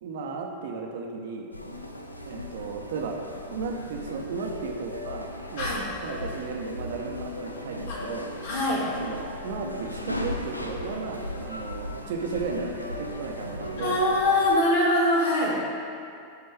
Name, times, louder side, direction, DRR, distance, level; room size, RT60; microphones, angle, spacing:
voice 1, 0.0-1.5 2.2-3.2 3.5-5.7 6.0-8.3 9.0-14.0, right 4 dB, 55° right, 1 dB, 0.9 m, -35 dB
sound 1, 1.5-14.6, left 1 dB, 85° left, 0.5 m, -37 dB
voice 2, 8.4-8.9 13.8-15.6, left 1 dB, 55° left, -4 dB, 1.8 m, -23 dB
13.0 x 4.4 x 3.5 m, 2.5 s
figure-of-eight pair, 90°, 0 cm